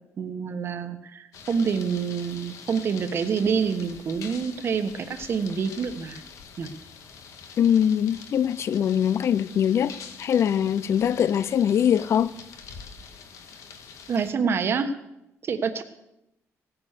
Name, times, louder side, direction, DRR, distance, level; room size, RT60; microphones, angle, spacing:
voice 1, 0.2-6.2 6.6-6.7 14.1-15.0 15.4-15.8, right 6 dB, 45° right, 1.3 m, -27 dB
sound 1, 1.3-14.3, left 6 dB, 80° left, 1.6 m, -45 dB
voice 2, 7.6-9.9 10.2-12.3, left 9 dB, 55° left, 0.5 m, -22 dB
16.5 x 9.0 x 6.7 m
cardioid pair, 125°, 6 cm